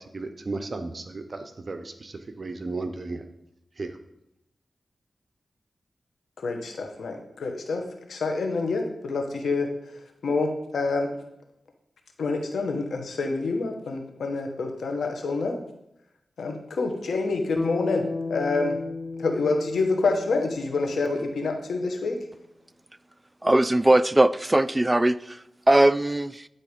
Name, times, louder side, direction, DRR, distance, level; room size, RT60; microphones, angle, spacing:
voice 1, 0.0-3.3 3.8-3.9, right 3 dB, 50° right, 8 dB, 0.8 m, -34 dB
voice 2, 6.4-7.8 8.1-9.7 10.2-11.1 12.2-15.6 16.4-18.0 18.3-18.8 19.2-22.2, left 3 dB, 90° left, 4 dB, 1.2 m, -27 dB
Bass guitar, 17.6-21.9, left 3 dB, 30° left, 0.9 m, -35 dB
voice 3, 23.4-25.4 25.7-26.5, right 1 dB, 20° right, 15 dB, 0.4 m, -20 dB
9.9 x 4.2 x 5.2 m, 0.83 s
cardioid pair, 60°, 0 cm